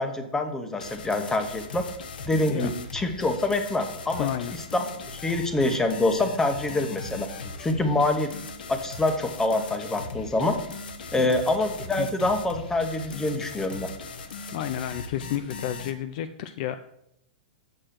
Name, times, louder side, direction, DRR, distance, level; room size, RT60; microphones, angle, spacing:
voice 1, 0.0-1.9 2.3-4.3 4.7-7.3 7.6-8.3 8.7-10.6 11.1-13.9, left 2 dB, 10° left, 7 dB, 1.0 m, -26 dB
sound 1, 0.8-15.9, left 3 dB, 85° left, 1.0 m, -39 dB
voice 2, 4.2-4.5 11.2-11.3 12.0-12.2 14.5-16.8, left 11 dB, 55° left, 10 dB, 0.5 m, -31 dB
6.8 x 6.4 x 5.8 m, 0.77 s
hypercardioid pair, 130°, 5 cm